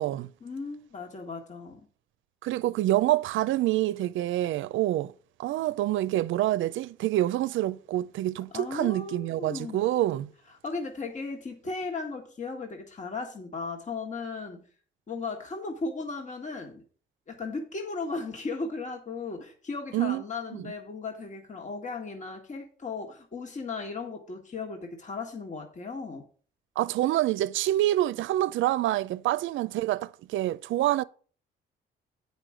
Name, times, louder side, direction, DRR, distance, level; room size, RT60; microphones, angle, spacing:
voice 1, 0.4-1.8 8.5-9.9 10.6-14.7 15.1-16.8 17.3-26.2, left 4 dB, 40° left, 1.8 m, -36 dB
voice 2, 2.4-5.1 5.4-10.3 19.9-20.2 20.5-20.7 26.8-31.0, right 14 dB, 75° right, 0.5 m, -27 dB
9.1 x 5.2 x 6.3 m
cardioid pair, 90°, 20 cm